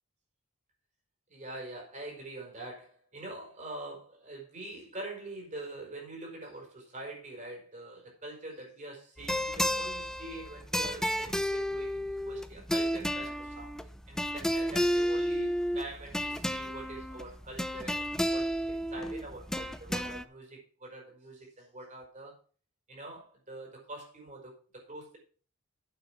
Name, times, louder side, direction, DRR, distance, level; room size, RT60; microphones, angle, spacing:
voice 1, 1.3-13.8 14.1-22.4 22.9-25.2, right 2 dB, 35° right, -1 dB, 5.1 m, -44 dB
sound 1, 9.2-20.2, equal, 5° left, 0.5 m, -32 dB
9.0 x 7.4 x 6.1 m, 0.40 s
head